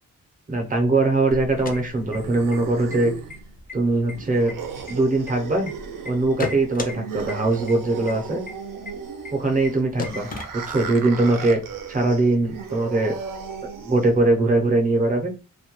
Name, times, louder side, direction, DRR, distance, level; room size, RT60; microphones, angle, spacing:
voice 1, 0.5-3.1 3.7-4.5 4.9-5.7 6.1-8.4 9.3-10.3 10.5-11.6 11.9-13.1 13.8-15.3, right 2 dB, 25° right, 2 dB, 0.5 m, -21 dB
sound 1, 1.3-14.3, right 6 dB, 80° right, 0.5 m, -36 dB
sound 2, 1.4-2.6 2.9-3.0 3.3-3.7 4.1-5.7 6.1-6.9 7.3-7.4 7.7-7.8 8.1-8.2 8.5-8.6 8.9-9.0 9.2-9.3 9.6-9.7 10.0-11.0, left 4 dB, 30° left, 0.3 m, -33 dB
2.2 x 2.1 x 2.9 m, 0.32 s
wide cardioid pair, 175°, 33 cm